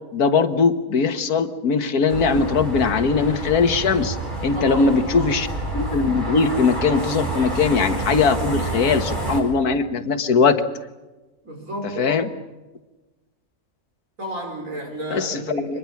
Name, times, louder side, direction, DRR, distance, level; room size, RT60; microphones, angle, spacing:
voice 1, 0.1-4.2 4.4-5.5 5.7-10.6 12.0-12.3 15.1-15.8, left 5 dB, 90° left, 10 dB, 1.8 m, -20 dB
sound 1, 2.1-9.4, right 2 dB, 30° right, 5.0 m, -28 dB
voice 2, 4.5-5.4 11.4-12.3 14.2-15.8, equal, 60° right, 3 dB, 5.3 m, -32 dB
25.0 x 21.0 x 7.2 m, 1.1 s
omnidirectional pair, 1.5 m